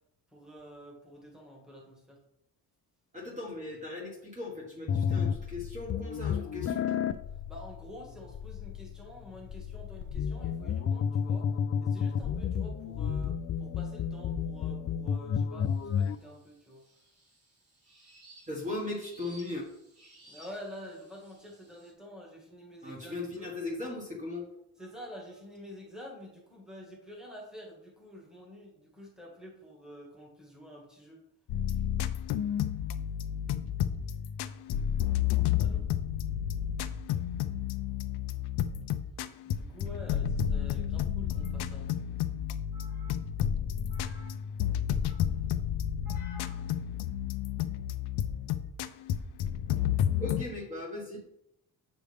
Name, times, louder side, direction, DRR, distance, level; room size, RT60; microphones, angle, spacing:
voice 1, 0.3-2.2 7.3-11.5 11.8-16.8 20.2-23.5 24.8-31.2 35.6-35.9 39.4-41.9, equal, ahead, -2 dB, 1.7 m, -48 dB
voice 2, 3.1-6.9 18.5-19.6 22.8-24.4 42.7-43.1 43.9-44.3 45.1-45.3 46.0-46.6 50.2-51.2, left 2 dB, 20° right, -3 dB, 1.5 m, -39 dB
sound 1, 4.9-16.2, left 7 dB, 40° left, 0.4 m, -32 dB
sound 2, 15.6-21.9, right 1 dB, 75° right, 2.9 m, -58 dB
sound 3, 31.5-50.4, left 10 dB, 90° left, 0.6 m, -31 dB
7.9 x 6.2 x 3.4 m, 0.78 s
cardioid pair, 165°, 38 cm